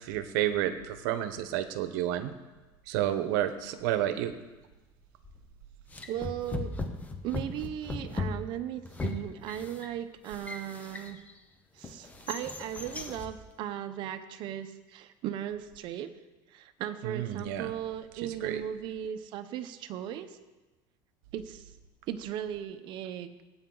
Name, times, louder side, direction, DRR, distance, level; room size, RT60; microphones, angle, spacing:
voice 1, 0.0-2.3 2.9-4.3 17.0-17.7 18.4-18.6, right 12 dB, 80° right, 10 dB, 1.0 m, -30 dB
sound 1, 5.2-5.5 5.9-11.4 11.8-13.4, left 3 dB, 15° left, 0.9 m, -38 dB
voice 2, 6.1-6.7 7.2-11.2 11.7-16.1 16.5-20.4 21.3-21.7 22.1-23.4, right 10 dB, 50° right, 9 dB, 0.9 m, -37 dB
17.5 x 8.8 x 4.0 m, 1.1 s
cardioid pair, 150°, 10 cm